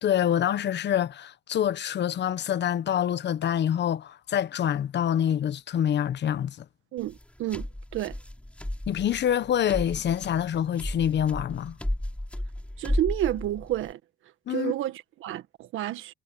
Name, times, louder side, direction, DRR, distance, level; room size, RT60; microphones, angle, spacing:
voice 1, 0.0-6.6 8.9-11.8 14.5-14.7, left 10 dB, 60° left, 1.1 m, -26 dB
voice 2, 6.9-7.7 7.9-8.2 12.8-14.0 14.5-16.1, right 13 dB, 85° right, 1.5 m, -30 dB
sound 1, 7.0-13.9, left 1 dB, 5° left, 6.6 m, -34 dB
cardioid pair, 90°, 20 cm